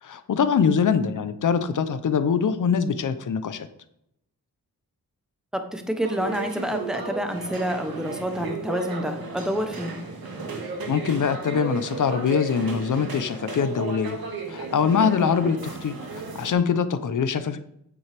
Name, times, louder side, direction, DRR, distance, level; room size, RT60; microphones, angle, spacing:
voice 1, 0.0-3.7 10.9-14.2 14.5-15.9 16.3-17.6, left 6 dB, 60° left, 11 dB, 0.8 m, -23 dB
voice 2, 5.5-10.0, equal, ahead, 6 dB, 1.0 m, -28 dB
sound 1, 6.0-16.5, right 3 dB, 80° right, 2.1 m, -34 dB
8.6 x 7.5 x 3.5 m, 0.77 s
wide cardioid pair, 125°, 35 cm